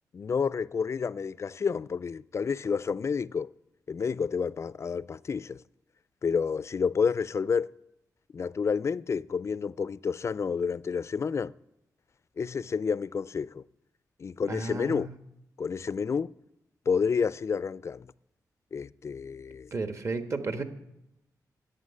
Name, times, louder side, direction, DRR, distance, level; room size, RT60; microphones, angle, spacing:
voice 1, 0.1-3.5 3.9-5.6 6.2-7.7 8.3-11.5 12.4-13.6 14.2-15.1 15.6-16.3 16.9-18.1 18.7-19.7, left 6 dB, 45° left, 0.4 m, -29 dB
voice 2, 14.5-15.1 19.7-20.6, right 3 dB, 45° right, 1.4 m, -33 dB
11.0 x 7.9 x 9.6 m
cardioid pair, 80°, 7 cm